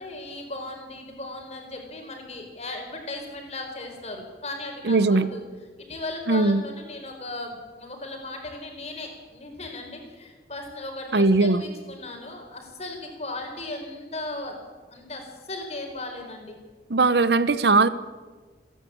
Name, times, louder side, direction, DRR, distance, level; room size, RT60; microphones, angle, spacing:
voice 1, 0.0-5.4 5.8-14.6 14.9-16.6, left 2 dB, 35° left, 3 dB, 4.5 m, -37 dB
voice 2, 4.8-5.3 6.3-6.6 11.1-11.6 16.9-17.9, right 3 dB, 70° right, 15 dB, 0.8 m, -19 dB
28.0 x 11.0 x 8.6 m, 1.4 s
head